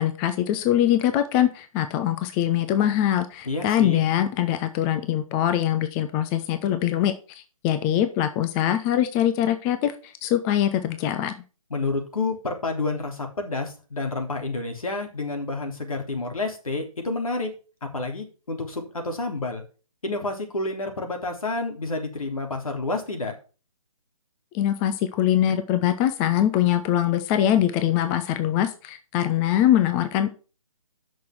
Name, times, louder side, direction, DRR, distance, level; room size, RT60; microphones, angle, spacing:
voice 1, 0.0-7.1 7.6-11.4 24.5-30.3, left 11 dB, 10° left, 9 dB, 0.4 m, -23 dB
voice 2, 3.5-4.1 11.7-17.5 17.9-19.6 20.0-23.3, left 3 dB, 75° left, 4 dB, 3.5 m, -29 dB
8.3 x 6.3 x 6.0 m, 0.35 s
figure-of-eight pair, 145°, 18 cm